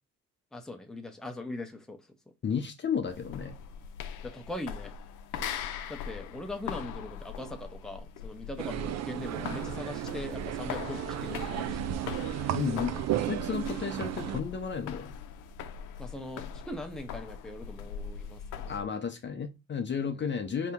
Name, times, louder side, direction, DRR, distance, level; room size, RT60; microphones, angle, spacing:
voice 1, 0.5-2.0 4.2-4.9 5.9-12.2 12.6-12.8 16.0-18.9, left 1 dB, ahead, 0.7 m, -41 dB
voice 2, 2.4-3.5 12.5-12.9 13.3-15.1 18.7-20.7, left 6 dB, 40° left, 0.6 m, -33 dB
sound 1, 3.0-18.9, left 7 dB, 90° left, 0.5 m, -41 dB
sound 2, 8.6-14.4, right 12 dB, 60° right, 0.4 m, -34 dB
4.0 x 2.9 x 3.5 m
cardioid pair, 90°, 30 cm